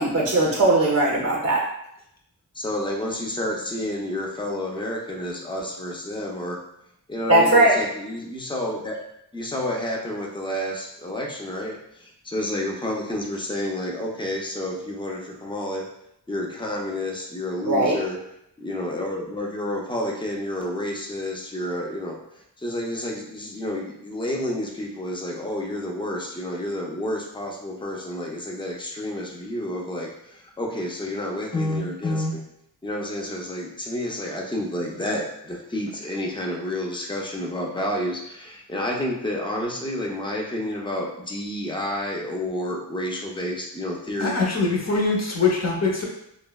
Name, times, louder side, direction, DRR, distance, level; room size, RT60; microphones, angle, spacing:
voice 1, 0.0-1.6 7.3-7.8 17.6-18.0, right 1 dB, 40° right, -3 dB, 0.5 m, -19 dB
voice 2, 2.5-6.6 7.1-9.0 9.3-15.9 16.3-18.2 18.6-32.4 32.8-44.3, left 1 dB, 10° left, -1 dB, 0.5 m, -30 dB
voice 3, 44.2-46.0, left 3 dB, 40° left, -1 dB, 0.8 m, -23 dB
3.3 x 2.0 x 2.2 m, 0.77 s
cardioid pair, 45°, 41 cm